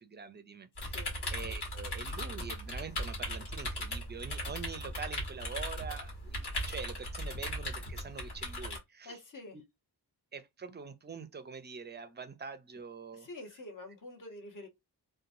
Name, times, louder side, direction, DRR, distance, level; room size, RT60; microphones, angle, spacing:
voice 1, 0.0-1.0 1.3-9.2 10.3-13.3, right 5 dB, 25° right, 0.4 m, -45 dB
sound 1, 0.8-8.8, left 1 dB, 70° left, 1.5 m, -38 dB
voice 2, 9.0-9.6 13.1-14.7, left 2 dB, 50° left, 0.9 m, -47 dB
2.9 x 2.2 x 2.6 m
wide cardioid pair, 150°, 42 cm